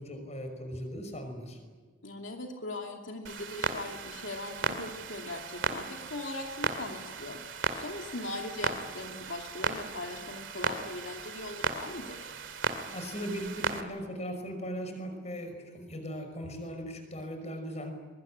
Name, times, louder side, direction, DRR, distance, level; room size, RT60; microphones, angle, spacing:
voice 1, 0.0-1.6 12.9-17.9, equal, 35° left, 6 dB, 5.6 m, -38 dB
voice 2, 2.0-12.3, left 2 dB, 75° left, 2 dB, 2.6 m, -40 dB
Clock, 3.2-13.8, right 4 dB, 75° right, 2.4 m, -36 dB
23.5 x 23.5 x 10.0 m, 1.4 s
head